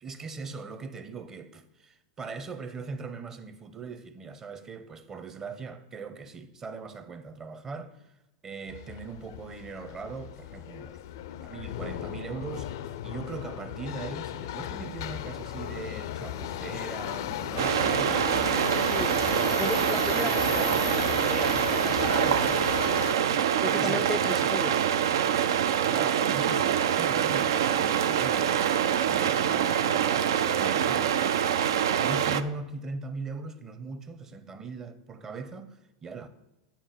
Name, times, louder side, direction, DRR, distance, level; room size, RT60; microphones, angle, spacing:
voice 1, 0.0-8.1 8.4-11.0 11.3-19.2 19.6-20.6 21.9-22.5 23.8-24.1 25.9-31.5 31.9-36.3, right 4 dB, 25° right, 0.8 m, -40 dB
Subway metro underground, 8.7-23.1, left 11 dB, 70° left, 0.4 m, -35 dB
sound 1, 17.6-32.4, right 9 dB, 80° right, 0.5 m, -25 dB
voice 2, 18.7-19.2 19.6-22.3 23.6-24.8, left 2 dB, 5° left, 0.3 m, -35 dB
8.9 x 4.9 x 5.8 m
hypercardioid pair, 110°, 2 cm